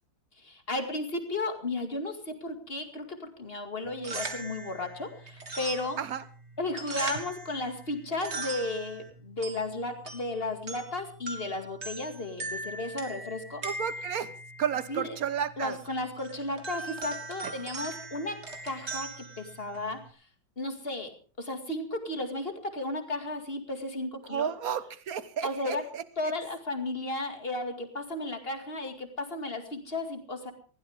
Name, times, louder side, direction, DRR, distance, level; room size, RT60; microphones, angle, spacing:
voice 1, 0.4-6.0 6.6-13.6 14.9-15.2 15.6-20.2 20.6-21.1 21.4-24.5 25.4-25.8 26.2-30.5, left 2 dB, 30° left, 6 dB, 2.3 m, -34 dB
sound 1, 3.8-20.1, right 3 dB, 35° right, 2.2 m, -41 dB
voice 2, 13.6-14.3 14.6-15.8 17.4-17.5 24.3-26.0, right 8 dB, 50° right, 14 dB, 1.3 m, -32 dB
20.5 x 16.5 x 3.6 m, 0.38 s
omnidirectional pair, 2.2 m